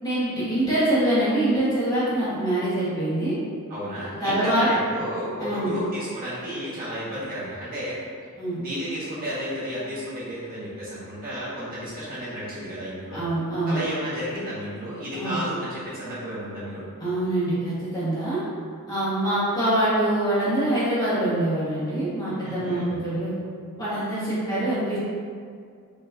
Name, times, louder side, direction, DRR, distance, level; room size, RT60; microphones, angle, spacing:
voice 1, 0.0-3.4 4.2-4.7 5.4-5.7 8.4-8.6 13.1-13.9 15.1-15.4 17.0-18.4 18.9-23.3 23.8-25.0, right 1 dB, 15° left, -12 dB, 1.4 m, -24 dB
voice 2, 3.7-8.0 8.6-13.3 13.6-16.9 22.4-23.0, equal, 40° right, -10 dB, 1.3 m, -32 dB
5.4 x 2.9 x 2.5 m, 2.2 s
head